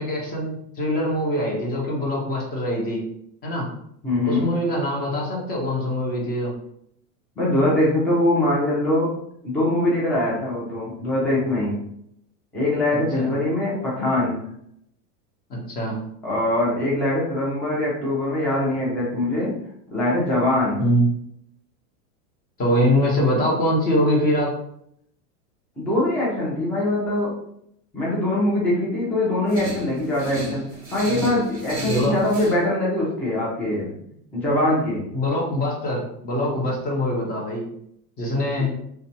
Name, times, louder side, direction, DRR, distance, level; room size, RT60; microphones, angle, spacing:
voice 1, 0.0-3.0 3.4-3.7 4.2-6.5 13.1-13.3 15.5-16.0 20.8-21.1 22.6-24.5 31.8-32.2 35.1-37.6 38.2-38.7, equal, 20° left, -2 dB, 0.8 m, -23 dB
voice 2, 4.0-4.5 7.4-9.1 9.4-11.8 12.5-14.4 16.2-19.5 19.9-20.8 25.8-27.3 27.9-30.6 30.9-33.9 34.3-35.0 38.6-38.7, left 1 dB, 5° left, -6 dB, 0.3 m, -22 dB
sound 1, 29.5-32.6, right 1 dB, 20° right, 0.8 m, -32 dB
2.4 x 2.2 x 2.8 m, 0.72 s
supercardioid pair, 130°, 46 cm